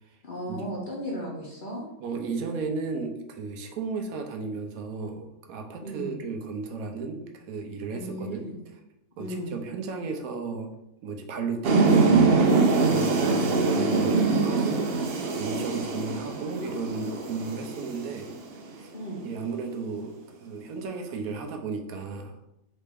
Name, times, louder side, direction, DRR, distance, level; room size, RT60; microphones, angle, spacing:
voice 1, 0.2-1.9 5.8-6.2 7.9-8.6 9.2-9.6 13.1-13.9 18.9-19.3, equal, 45° left, -2 dB, 0.7 m, -35 dB
voice 2, 2.0-8.5 9.2-10.7 11.0-12.4 12.8-18.9 19.2-22.4, right 4 dB, 80° right, 5 dB, 1.0 m, -34 dB
sound 1, 11.6-18.6, right 4 dB, 65° right, 0.6 m, -23 dB
4.1 x 3.3 x 3.3 m, 0.86 s
omnidirectional pair, 1.5 m